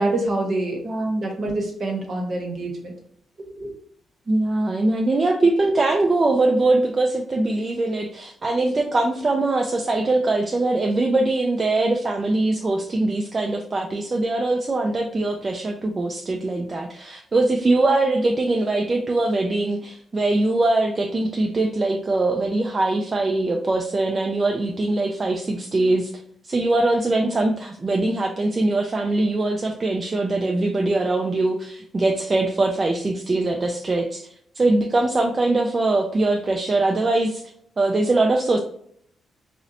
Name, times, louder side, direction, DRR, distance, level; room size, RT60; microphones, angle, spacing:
voice 1, 0.0-0.8 1.2-2.9 3.4-3.7, right 2 dB, 55° right, 1 dB, 0.9 m, -26 dB
voice 2, 0.8-1.3 4.3-26.1 26.5-34.3 34.6-37.4 37.8-38.6, right 2 dB, 35° right, 1 dB, 0.3 m, -22 dB
2.7 x 2.0 x 2.6 m, 0.65 s
cardioid pair, 65°, 0 cm